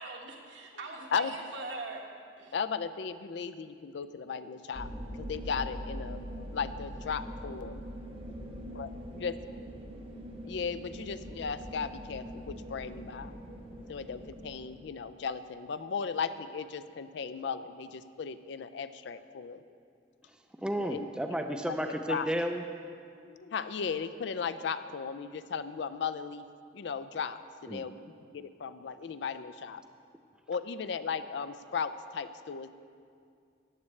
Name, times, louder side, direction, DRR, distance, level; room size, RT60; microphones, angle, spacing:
voice 1, 0.0-2.0 2.4-2.5, right 3 dB, 75° right, 0 dB, 1.4 m, -41 dB
voice 2, 2.5-7.8 8.3-8.4 8.8-8.9 9.1-9.7 10.5-13.3 13.9-19.6 20.8-21.1 21.5-21.6 22.1-22.3 23.2-26.4 26.7-29.8 30.5-32.7, left 6 dB, 70° left, 13 dB, 0.4 m, -36 dB
sound 1, 4.7-14.8, equal, 30° right, 0.8 m, -42 dB
voice 3, 20.6-22.6 27.7-27.8, equal, 5° right, 4 dB, 0.3 m, -32 dB
14.5 x 9.5 x 3.2 m, 2.3 s
head